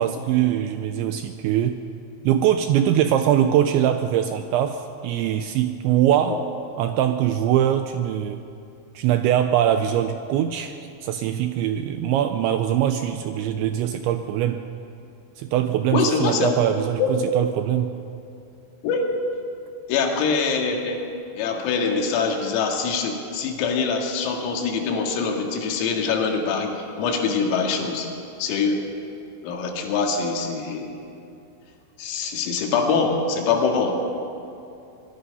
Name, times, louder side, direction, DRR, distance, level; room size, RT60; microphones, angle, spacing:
voice 1, 0.0-1.8 2.2-6.4 6.8-8.4 9.0-14.6 15.4-17.9, right 10 dB, 85° right, 8 dB, 2.7 m, -22 dB
voice 2, 15.9-16.6 17.0-17.3 18.8-19.1 19.9-21.0 21.4-28.1 28.4-28.8 29.4-31.0 32.0-34.0, left 5 dB, 90° left, 2 dB, 4.8 m, -24 dB
24.5 x 21.0 x 5.5 m, 2.6 s
omnidirectional pair, 5.9 m